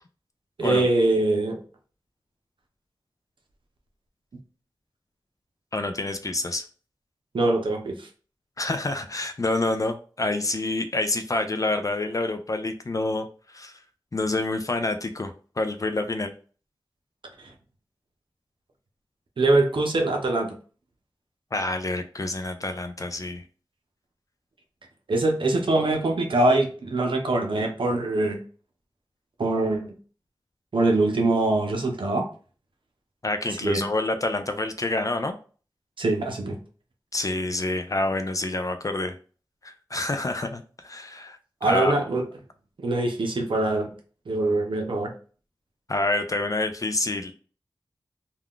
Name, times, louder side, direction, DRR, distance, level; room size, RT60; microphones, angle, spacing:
voice 1, 0.6-1.6 7.3-8.1 17.4-17.5 19.4-20.5 25.1-28.4 29.4-29.9 30.7-32.3 33.6-33.9 36.0-36.6 41.6-42.2 42.8-43.9 44.3-45.1, right 2 dB, 80° right, 2 dB, 0.6 m, -23 dB
voice 2, 5.7-6.6 8.6-13.8 14.1-16.3 21.5-23.4 33.2-35.4 37.1-39.2 39.6-41.9 45.9-47.3, left 2 dB, 40° left, 8 dB, 0.3 m, -27 dB
2.3 x 2.3 x 3.5 m, 0.39 s
wide cardioid pair, 55°, 8 cm